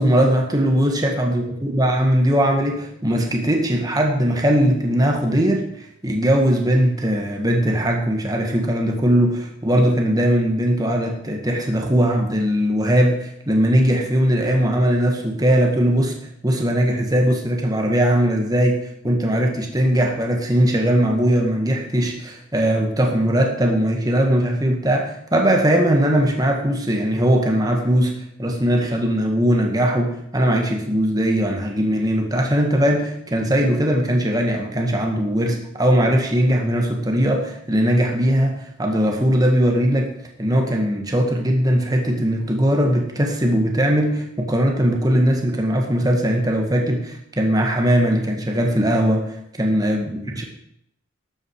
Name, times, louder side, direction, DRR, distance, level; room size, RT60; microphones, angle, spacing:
voice 1, 0.0-16.1 16.4-40.1 40.4-50.4, equal, 20° right, 2 dB, 1.8 m, -20 dB
12.5 x 9.0 x 4.9 m, 0.74 s
head